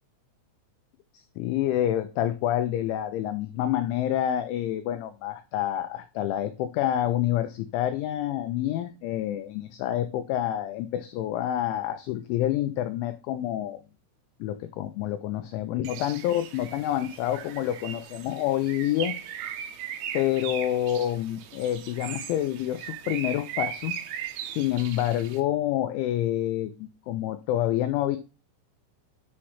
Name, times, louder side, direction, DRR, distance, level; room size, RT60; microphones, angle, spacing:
voice 1, 1.1-13.8 14.4-19.2 20.1-24.0 24.4-28.2, left 12 dB, 90° left, 9 dB, 2.7 m, -28 dB
Bird, 15.8-25.4, right 9 dB, 85° right, 3.6 m, -38 dB
8.8 x 3.2 x 5.6 m, 0.32 s
omnidirectional pair, 6.0 m